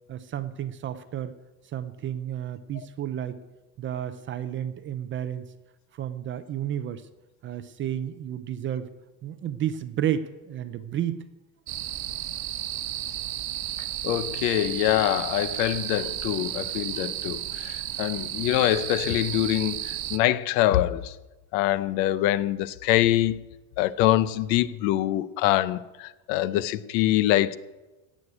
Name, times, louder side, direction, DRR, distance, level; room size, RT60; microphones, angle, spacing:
voice 1, 0.1-1.3 1.7-3.4 3.8-5.5 5.9-7.0 7.4-8.9 9.2-11.2, right 10 dB, 25° right, 0.4 m, -31 dB
sound 1, 11.7-20.2, right 13 dB, 45° right, 1.0 m, -33 dB
voice 2, 14.0-21.1 21.5-23.4 23.8-27.6, left 14 dB, 85° left, 0.9 m, -24 dB
16.5 x 6.4 x 9.8 m
cardioid pair, 160°, 49 cm